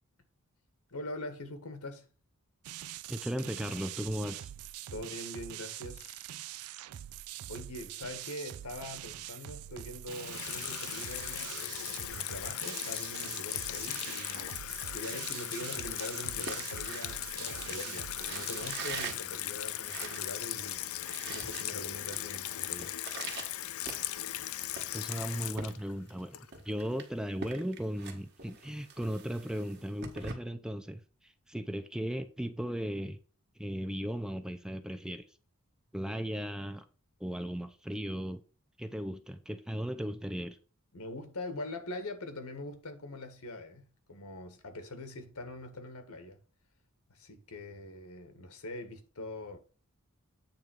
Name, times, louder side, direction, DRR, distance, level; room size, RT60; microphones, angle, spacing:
voice 1, 0.9-2.1 4.9-6.2 7.5-22.9 40.9-46.4 47.1-49.6, left 2 dB, 85° left, 1.7 m, -43 dB
sound 1, 2.6-19.2, right 13 dB, 80° right, 0.4 m, -44 dB
voice 2, 3.1-4.5 24.9-33.2 33.6-35.3 35.9-36.8 37.2-38.4 38.8-40.6, equal, 5° right, 0.6 m, -36 dB
Water tap faucet / Sink (filling or washing), 10.1-26.8, left 13 dB, 70° left, 0.5 m, -38 dB
sound 2, 15.7-17.8 18.2-20.4 20.7-20.8 21.0-22.2 22.5-24.4 24.8-26.2 26.5-30.3, right 5 dB, 50° right, 1.6 m, -44 dB
8.8 x 3.6 x 6.3 m
head